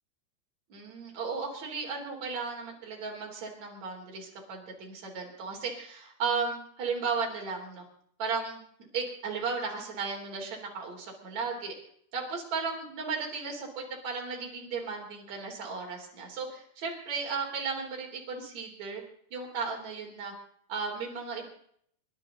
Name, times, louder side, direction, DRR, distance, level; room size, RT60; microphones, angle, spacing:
voice 1, 0.7-7.8 8.2-8.6 8.9-11.7 12.1-19.0 19.3-20.3 20.7-21.5, right 5 dB, 45° right, 0 dB, 4.7 m, -35 dB
27.0 x 11.5 x 3.9 m, 0.65 s
omnidirectional pair, 4.8 m